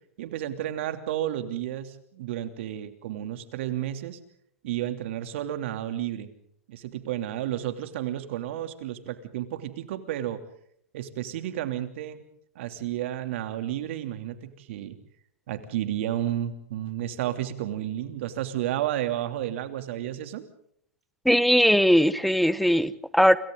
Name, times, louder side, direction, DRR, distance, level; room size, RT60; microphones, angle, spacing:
voice 1, 0.2-4.2 4.6-6.3 6.7-10.4 10.9-12.2 12.5-15.0 15.5-20.4, right 12 dB, 60° right, 8 dB, 3.0 m, -32 dB
voice 2, 21.2-23.4, equal, ahead, 16 dB, 1.2 m, -20 dB
29.5 x 27.5 x 3.9 m, 0.67 s
hypercardioid pair, 110°, 7 cm